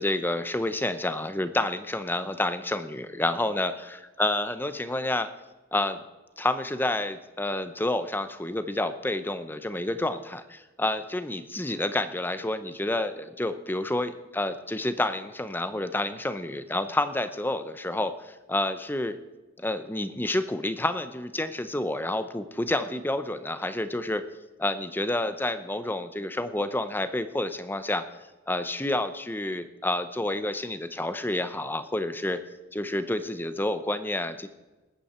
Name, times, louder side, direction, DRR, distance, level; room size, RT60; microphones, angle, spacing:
voice 1, 0.0-5.3 5.7-6.0 6.4-19.2 19.6-24.2 24.6-28.0 28.5-32.4 32.7-34.5, left 1 dB, 10° left, 11 dB, 0.6 m, -29 dB
20.5 x 8.7 x 4.3 m, 1.2 s
head